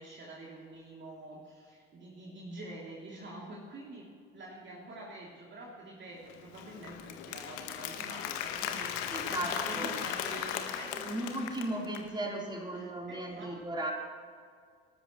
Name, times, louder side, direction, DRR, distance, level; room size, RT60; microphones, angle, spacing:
voice 1, 0.0-11.1 12.7-13.6, right 1 dB, 35° right, -3 dB, 3.0 m, -47 dB
Applause, 6.3-12.1, left 9 dB, 65° left, 1.5 m, -37 dB
voice 2, 9.1-10.0 10.8-13.9, right 1 dB, 15° right, -2 dB, 3.9 m, -36 dB
25.5 x 13.5 x 3.1 m, 2.1 s
figure-of-eight pair, 60°, 32 cm